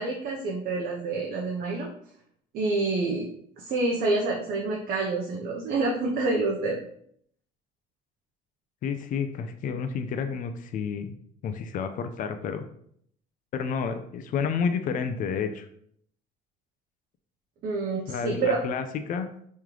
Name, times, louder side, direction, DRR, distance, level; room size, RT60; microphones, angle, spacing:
voice 1, 0.0-1.9 2.5-3.3 3.6-6.8 17.6-18.6, right 3 dB, 60° right, -2 dB, 0.7 m, -27 dB
voice 2, 8.8-11.1 11.4-12.6 13.5-15.7 18.1-19.3, left 6 dB, 50° left, 8 dB, 0.4 m, -30 dB
3.1 x 3.1 x 3.7 m, 0.65 s
cardioid pair, 110°, 17 cm